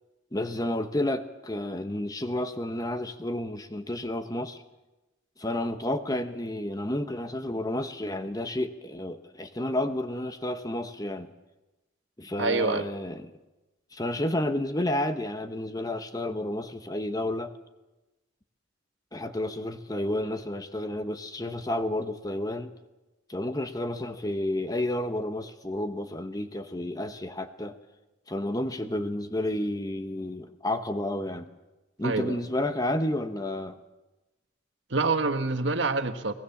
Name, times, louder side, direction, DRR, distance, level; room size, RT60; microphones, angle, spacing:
voice 1, 0.3-4.6 5.4-11.3 12.2-13.3 13.9-17.5 19.1-22.7 23.3-27.8 28.3-31.5 32.0-33.8, left 1 dB, 20° left, 9 dB, 1.0 m, -31 dB
voice 2, 12.4-12.8 32.0-32.4 34.9-36.3, right 3 dB, 70° right, 8 dB, 1.5 m, -26 dB
22.5 x 19.0 x 7.2 m, 1.1 s
head